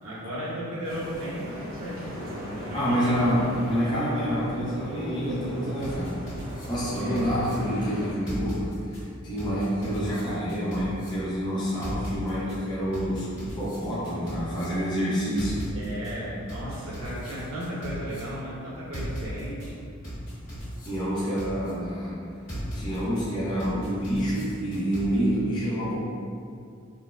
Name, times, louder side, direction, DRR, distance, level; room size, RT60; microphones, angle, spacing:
voice 1, 0.0-3.2 3.6-3.7 7.0-7.4 15.7-19.7 21.2-21.4, equal, 85° right, -7 dB, 0.9 m, -35 dB
sound 1, 0.8-8.1, equal, 45° right, 1.0 m, -38 dB
voice 2, 2.7-6.2 6.7-15.6 20.8-22.2 22.7-25.9, equal, 20° left, -10 dB, 0.6 m, -28 dB
sound 2, 5.8-7.5 8.3-9.0 9.4-11.1 11.8-12.6 12.9-14.6 15.4-16.1 16.5-18.2 18.9-19.7 20.0-21.7 22.5-23.2 23.6-25.0, equal, 65° left, 1.5 m, -37 dB
3.9 x 2.1 x 2.4 m, 2.3 s
head